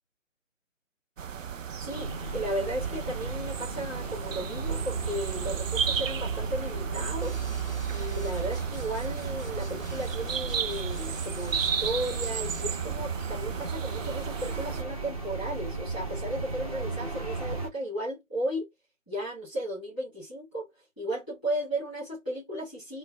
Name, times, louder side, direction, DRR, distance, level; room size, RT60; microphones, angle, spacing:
sound 1, 1.2-14.8, right 8 dB, 75° right, 0.5 m, -34 dB
voice 1, 1.8-7.4 7.9-18.7 19.1-20.7 21.0-23.0, right 1 dB, 5° right, 1.4 m, -35 dB
sound 2, 1.9-17.7, right 3 dB, 30° right, 0.8 m, -36 dB
sound 3, 7.2-12.6, equal, 15° left, 0.7 m, -50 dB
3.4 x 2.1 x 2.2 m
figure-of-eight pair, 160°, 39 cm